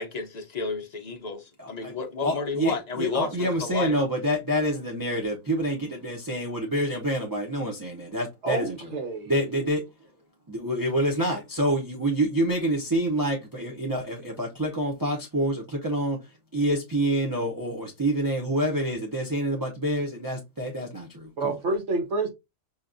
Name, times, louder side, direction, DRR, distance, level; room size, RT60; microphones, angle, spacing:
voice 1, 0.0-4.0, left 4 dB, 50° left, 0.5 m, -31 dB
voice 2, 1.6-1.9 2.2-8.8 9.3-9.8 10.5-16.2 16.5-21.5, right 1 dB, 30° right, 0.3 m, -27 dB
voice 3, 8.4-9.6 21.4-22.3, right 2 dB, 60° right, 1.1 m, -29 dB
5.7 x 2.2 x 2.5 m
omnidirectional pair, 1.4 m